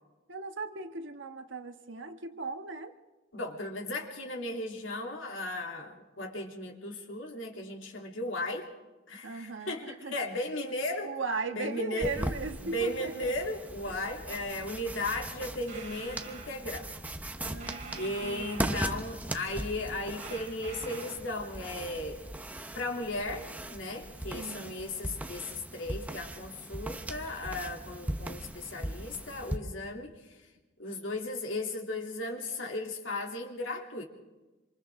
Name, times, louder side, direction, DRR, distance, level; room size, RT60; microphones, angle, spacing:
voice 1, 0.3-2.9 9.2-10.1 11.0-13.3 13.9-14.1 17.4-19.0 24.3-24.8, right 3 dB, 70° right, 6 dB, 1.5 m, -38 dB
voice 2, 3.3-8.7 9.1-11.1 11.5-12.1 12.6-16.9 17.4-22.2 22.7-30.4 30.8-34.0, left 1 dB, 80° left, 1 dB, 3.1 m, -36 dB
sound 1, 12.0-29.6, right 1 dB, 10° right, 0.9 m, -39 dB
sound 2, 15.7-16.6 17.6-19.2 20.2-21.2, right 5 dB, 40° right, 3.8 m, -46 dB
27.0 x 26.0 x 3.8 m, 1.1 s
head